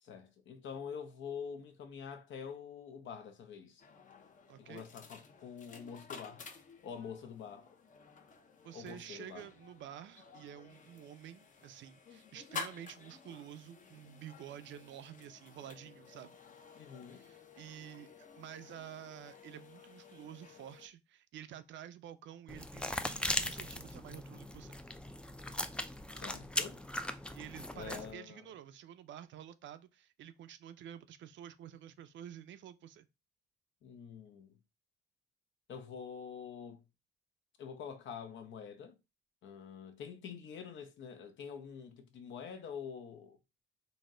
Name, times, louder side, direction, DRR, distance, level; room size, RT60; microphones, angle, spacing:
voice 1, 0.0-3.8 4.6-6.4 6.8-7.7 8.7-9.4 16.8-17.3 26.1-26.8 27.7-28.4 33.8-34.6 35.7-36.8 37.6-39.0 39.4-43.4, left 7 dB, 70° left, 0.8 m, -46 dB
sound 1, 3.8-20.9, left 5 dB, 40° left, 0.7 m, -52 dB
voice 2, 4.5-4.8 8.6-16.4 17.1-24.7 27.3-33.1, right 10 dB, 70° right, 0.5 m, -50 dB
sound 2, 22.5-28.1, left 1 dB, 5° left, 0.3 m, -39 dB
4.0 x 2.1 x 3.7 m
cardioid pair, 90°, 20 cm